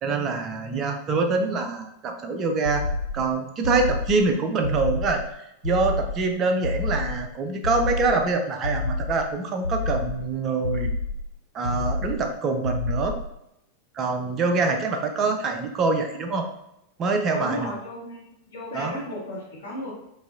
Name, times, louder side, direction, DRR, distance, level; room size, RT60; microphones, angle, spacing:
voice 1, 0.0-2.8 3.1-5.2 5.6-10.9 11.5-13.2 13.9-16.5 17.0-17.7 18.7-18.9, right 3 dB, 30° right, 5 dB, 0.6 m, -25 dB
sound 1, 2.6-3.3 3.6-4.3 4.6-5.3 5.6-6.3 6.6-7.3 7.6-8.3 8.6-9.3 9.6-10.3 10.6-11.3 11.6-12.3 12.6-13.3, left 3 dB, 85° left, 0.4 m, -28 dB
voice 2, 17.3-18.2 18.5-19.9, left 1 dB, 60° left, -9 dB, 1.3 m, -34 dB
4.8 x 2.7 x 2.6 m, 0.81 s
figure-of-eight pair, 90°, 0 cm